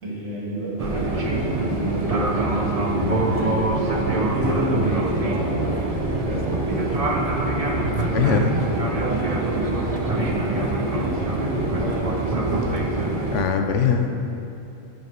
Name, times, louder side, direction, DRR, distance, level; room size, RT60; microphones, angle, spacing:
voice 1, 0.0-2.4 3.0-7.1 7.7-13.0 14.0-14.1, right 1 dB, 70° right, -6 dB, 3.1 m, -31 dB
Fixed-wing aircraft airplane, 0.8-13.4, right 2 dB, 30° right, 0.9 m, -24 dB
voice 2, 3.0-3.3 7.9-8.5 13.3-14.1, left 7 dB, 70° left, 6 dB, 1.1 m, -22 dB
15.5 x 5.9 x 5.3 m, 2.7 s
omnidirectional pair, 1.3 m